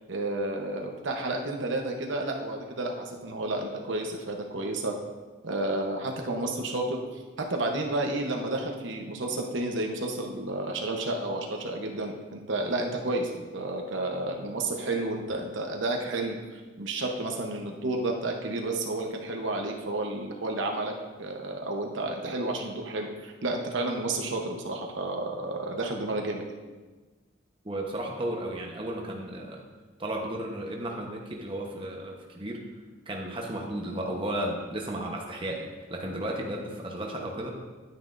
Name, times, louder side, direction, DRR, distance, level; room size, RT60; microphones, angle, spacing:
voice 1, 0.1-5.0 5.4-20.9 21.2-26.4, right 2 dB, 75° right, 2 dB, 1.0 m, -31 dB
voice 2, 27.6-29.6 30.0-32.6 33.1-37.6, right 1 dB, 25° right, 0 dB, 1.0 m, -34 dB
10.5 x 9.3 x 2.6 m, 1.3 s
head